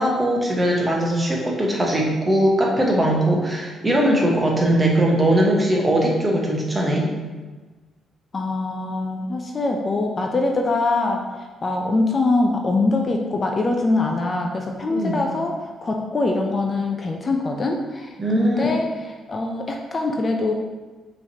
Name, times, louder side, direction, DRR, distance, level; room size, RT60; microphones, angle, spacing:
voice 1, 0.0-7.1 14.9-15.2 18.2-18.7, right 1 dB, 20° right, -1 dB, 1.0 m, -20 dB
voice 2, 8.3-20.5, left 2 dB, 35° left, 2 dB, 0.5 m, -23 dB
5.4 x 3.2 x 2.8 m, 1.3 s
cardioid pair, 90°, 0 cm